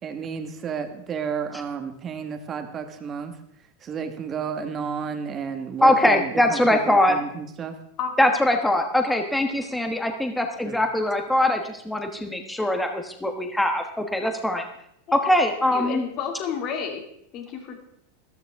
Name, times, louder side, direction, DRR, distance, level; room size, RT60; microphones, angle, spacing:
voice 1, 0.0-3.3 3.8-7.7 10.6-10.8, right 6 dB, 25° right, 7 dB, 1.5 m, -32 dB
voice 2, 5.8-7.2 8.2-14.7 15.1-16.0, left 1 dB, 5° left, 5 dB, 1.2 m, -22 dB
voice 3, 15.7-17.0 17.3-17.8, left 7 dB, 45° left, 4 dB, 2.4 m, -31 dB
13.5 x 13.0 x 3.6 m, 0.74 s
supercardioid pair, 130°, 0 cm